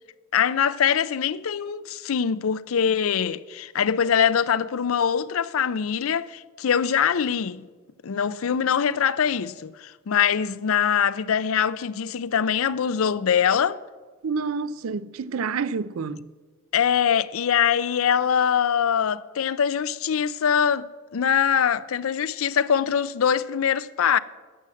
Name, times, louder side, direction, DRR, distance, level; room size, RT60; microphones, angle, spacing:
voice 1, 0.3-7.6 8.0-13.8 16.7-20.9 21.1-24.2, left 8 dB, 75° left, 0.5 m, -23 dB
voice 2, 14.2-16.3, right 5 dB, 70° right, 0.4 m, -28 dB
12.0 x 7.6 x 7.5 m
head